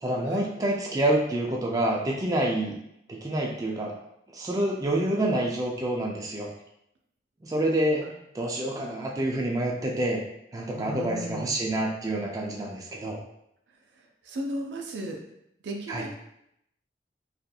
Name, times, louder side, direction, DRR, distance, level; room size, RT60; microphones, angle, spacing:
voice 1, 0.0-2.8 3.1-3.9 4.3-6.5 7.4-8.0 8.3-10.2 10.5-13.2 15.9-16.0, right 1 dB, 20° right, -2 dB, 0.3 m, -27 dB
voice 2, 10.8-11.5 14.3-15.2 15.6-16.1, equal, 85° right, 2 dB, 0.4 m, -35 dB
2.8 x 2.4 x 2.2 m, 0.77 s
head